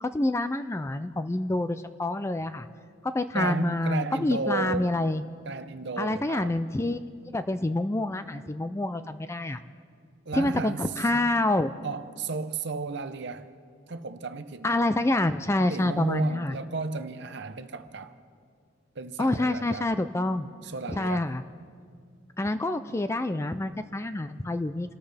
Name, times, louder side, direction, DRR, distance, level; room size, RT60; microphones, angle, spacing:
voice 1, 0.0-2.7 3.0-5.2 6.0-7.0 7.3-9.6 10.3-11.7 14.6-16.5 19.2-20.5 20.9-21.4 22.4-24.9, left 2 dB, 15° left, 0.3 m, -27 dB
voice 2, 3.3-4.9 5.5-6.6 10.3-11.2 11.8-13.5 13.9-14.8 15.7-18.1 19.0-19.9 20.6-21.3, right 3 dB, 55° right, 0.8 m, -33 dB
28.0 x 13.5 x 3.4 m
head